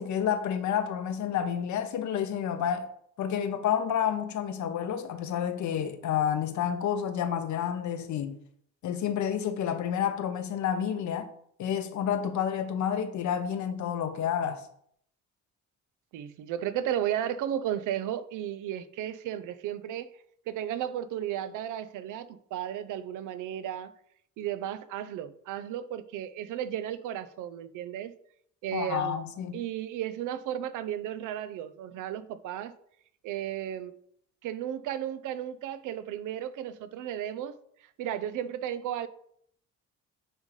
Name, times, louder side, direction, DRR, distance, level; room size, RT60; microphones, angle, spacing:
voice 1, 0.0-2.9 3.2-8.4 8.8-11.3 11.6-14.6 28.7-29.6, left 8 dB, 70° left, 0.8 m, -29 dB
voice 2, 16.1-20.1 20.5-23.9 24.4-28.1 28.6-29.2 29.5-32.7 33.2-33.9 34.4-37.6 38.0-39.1, right 10 dB, 85° right, 0.5 m, -34 dB
9.3 x 3.7 x 3.2 m
cardioid pair, 90°, 30 cm